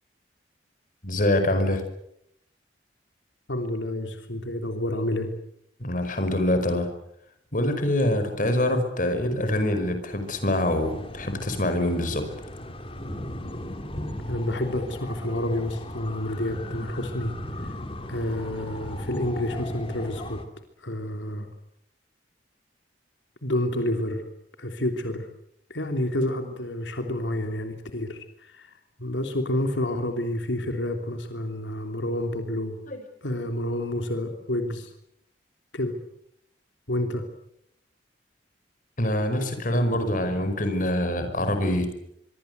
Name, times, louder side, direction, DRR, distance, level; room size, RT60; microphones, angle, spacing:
voice 1, 1.0-1.8 5.8-6.9 7.5-12.2 32.9-33.0 39.0-41.9, left 1 dB, 45° left, 8 dB, 5.3 m, -25 dB
voice 2, 3.5-5.3 14.3-17.7 18.1-20.4 20.8-21.5 23.4-24.2 24.6-25.3 25.7-32.8 33.2-34.9 35.7-36.0 36.9-37.3, left 1 dB, 90° left, 5 dB, 3.1 m, -29 dB
sound 1, 10.1-20.5, left 1 dB, 30° left, 2.9 m, -37 dB
25.0 x 24.0 x 8.1 m, 0.76 s
head